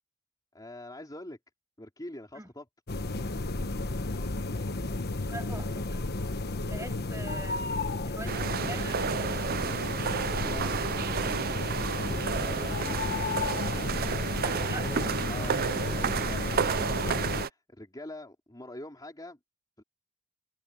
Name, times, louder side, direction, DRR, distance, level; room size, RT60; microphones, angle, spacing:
voice 1, 0.5-1.4 1.8-2.6 10.1-19.4 19.8-19.9, left 1 dB, 20° left, 3.3 m, -46 dB
sound 1, 2.9-17.5, left 2 dB, 50° left, 1.2 m, -32 dB
voice 2, 5.3-6.0 6.6-7.7 8.1-9.1 14.4-15.0, right 2 dB, 15° right, 7.5 m, -43 dB
sound 2, 8.3-17.5, right 7 dB, 45° right, 0.5 m, -31 dB
head